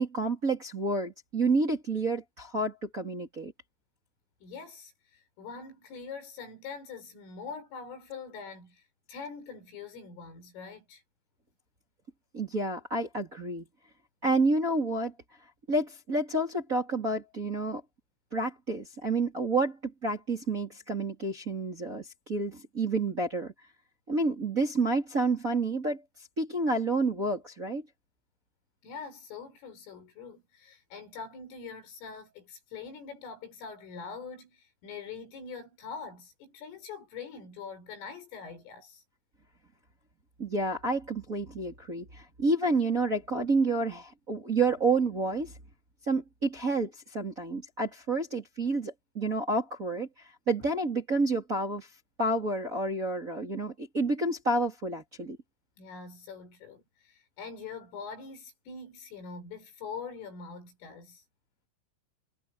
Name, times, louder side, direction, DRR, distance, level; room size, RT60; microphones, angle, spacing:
voice 1, 0.0-3.5 12.3-13.7 14.2-15.1 15.7-17.8 18.3-23.5 24.1-26.0 26.4-27.8 40.4-45.5 46.1-50.1 50.5-51.9 52.2-55.4, right 2 dB, 20° right, 2.4 m, -29 dB
voice 2, 4.4-8.8 9.1-11.0 28.8-39.0 55.8-61.2, left 5 dB, 85° left, 9.3 m, -43 dB
omnidirectional pair, 5.7 m